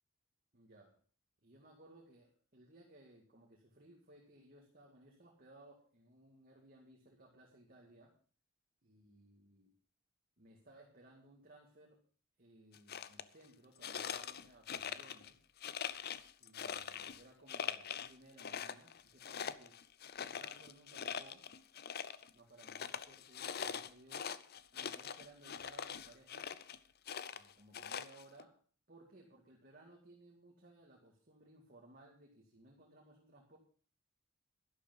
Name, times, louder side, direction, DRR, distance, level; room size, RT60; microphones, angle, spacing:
voice 1, 0.5-1.0 1.4-8.1 8.8-9.7 10.4-12.0 12.4-15.4 16.4-19.8 20.1-21.5 22.3-24.3 24.7-26.6 27.3-28.6 28.9-33.6, right 1 dB, 45° right, 0 dB, 2.2 m, -61 dB
sound 1, 12.7-13.2 13.8-15.3 15.6-17.2 17.5-18.1 18.4-22.3 22.6-26.8 27.1-28.4, left 7 dB, 50° left, 0.6 m, -43 dB
12.0 x 11.5 x 5.4 m, 0.42 s
head